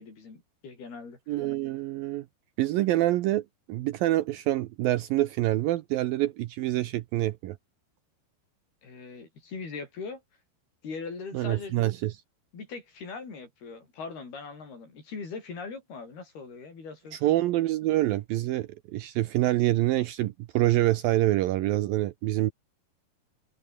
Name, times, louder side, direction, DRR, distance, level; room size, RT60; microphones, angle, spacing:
voice 1, 0.0-1.2 8.8-10.2 10.8-11.8 12.5-17.4, left 4 dB, 65° left, 9.0 m, -40 dB
voice 2, 1.3-2.3 2.6-7.6 11.3-12.1 17.1-22.5, right 15 dB, 75° right, 2.2 m, -26 dB
omnidirectional pair, 4.8 m